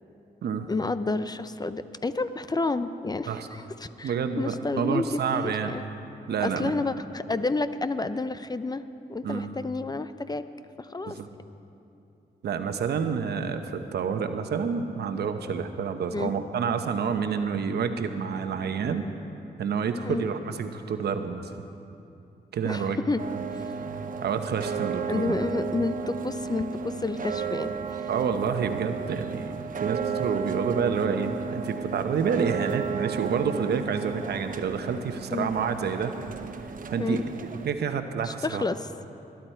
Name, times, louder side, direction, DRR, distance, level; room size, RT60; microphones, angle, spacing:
voice 1, 0.7-5.0 5.3-5.8 6.4-8.8 9.1-10.4 10.8-11.2 16.1-16.3 20.0-20.2 22.6-23.2 25.1-28.1 35.3-35.5 37.0-37.2 38.2-38.9, left 3 dB, 25° left, 12 dB, 0.6 m, -30 dB
voice 2, 4.0-5.7 6.3-6.7 9.2-9.5 11.0-11.3 12.4-19.1 19.6-21.5 22.5-23.0 24.2-25.4 28.1-36.1 36.9-37.2 37.6-38.6, right 6 dB, 80° right, 7 dB, 0.9 m, -28 dB
sound 1, 23.2-37.7, right 5 dB, 55° right, 0.9 m, -33 dB
21.0 x 12.0 x 4.5 m, 2.7 s
cardioid pair, 75°, 17 cm